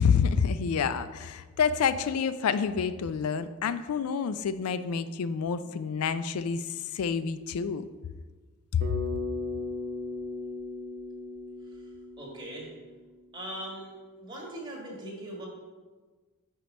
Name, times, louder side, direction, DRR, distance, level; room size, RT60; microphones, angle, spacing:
voice 1, 0.0-7.9 8.7-9.0, left 6 dB, 80° left, 13 dB, 0.4 m, -28 dB
Bass guitar, 8.8-13.2, left 3 dB, 55° right, 0.9 m, -37 dB
voice 2, 12.2-12.7 13.3-15.5, right 1 dB, 20° right, -3 dB, 1.5 m, -40 dB
5.0 x 4.5 x 5.3 m, 1.4 s
head